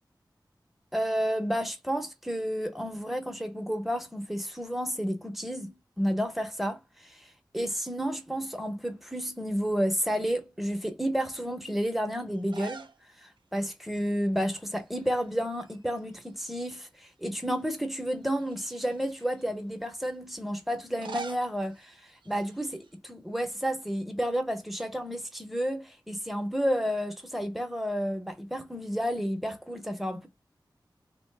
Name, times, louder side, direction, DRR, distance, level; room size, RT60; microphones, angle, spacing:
voice 1, 0.9-7.2 7.5-12.8 13.2-22.0 22.3-30.3, equal, ahead, 0.7 m, -31 dB
sound 1, 12.4-13.0 13.4-13.5 14.8-15.3 15.6-16.8 17.3-17.4 18.3-19.5 20.8-23.0, right 5 dB, 85° right, 0.5 m, -45 dB
2.8 x 2.1 x 3.2 m
wide cardioid pair, 80°, 8 cm